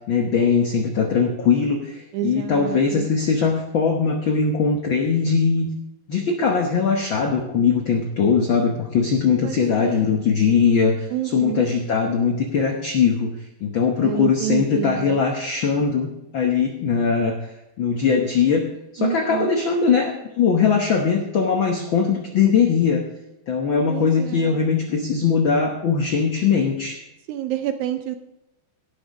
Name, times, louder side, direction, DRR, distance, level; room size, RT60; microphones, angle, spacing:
voice 1, 0.1-5.7 6.1-13.3 13.6-17.4 17.8-18.7 18.9-23.0 23.5-27.0, left 6 dB, 75° left, 2 dB, 1.1 m, -20 dB
voice 2, 2.1-3.1 9.4-10.2 11.1-11.6 14.0-15.2 19.0-19.5 23.9-24.6 27.3-28.2, right 12 dB, 80° right, 9 dB, 1.8 m, -28 dB
17.0 x 6.2 x 5.0 m, 0.94 s
omnidirectional pair, 3.8 m